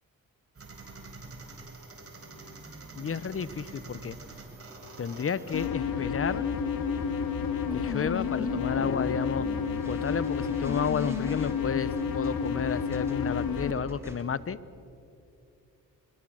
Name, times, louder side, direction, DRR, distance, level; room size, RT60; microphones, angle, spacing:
sound 1, 0.6-5.7, right 3 dB, 40° right, 4.2 m, -46 dB
voice 1, 3.0-4.2 5.0-6.5 7.7-9.5 9.8-14.6, left 6 dB, 40° left, 18 dB, 0.9 m, -31 dB
sound 2, 3.0-14.2, right 1 dB, 5° right, 3.5 m, -46 dB
sound 3, 5.5-13.7, left 6 dB, 85° left, 1.9 m, -30 dB
24.5 x 21.0 x 6.3 m, 2.7 s
cardioid pair, 65°, 34 cm